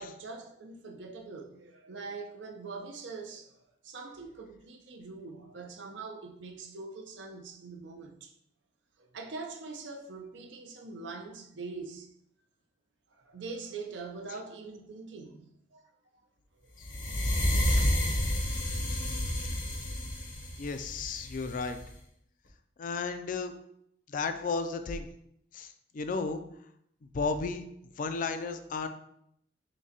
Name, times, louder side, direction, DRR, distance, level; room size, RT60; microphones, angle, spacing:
voice 1, 0.0-3.5 3.8-8.3 9.0-12.1 13.1-15.9, right 4 dB, 70° right, 0.5 m, -43 dB
sound 1, 16.8-21.9, left 1 dB, 70° left, 0.7 m, -30 dB
voice 2, 20.6-21.8 22.8-23.5 24.1-25.1 25.5-26.4 27.1-27.6 28.0-28.9, left 4 dB, 45° left, 0.3 m, -33 dB
6.0 x 2.2 x 2.8 m
head